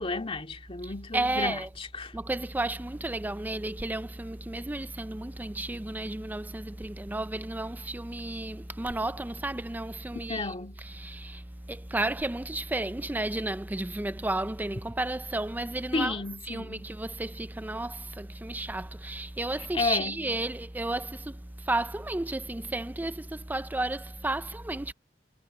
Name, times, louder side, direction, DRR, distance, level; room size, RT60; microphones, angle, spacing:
voice 1, 0.0-2.1 10.1-10.8 15.9-16.9 19.7-20.2, left 3 dB, 30° left, 2.4 m, -32 dB
voice 2, 0.8-1.7 2.1-24.9, right 2 dB, 10° right, 0.4 m, -33 dB
head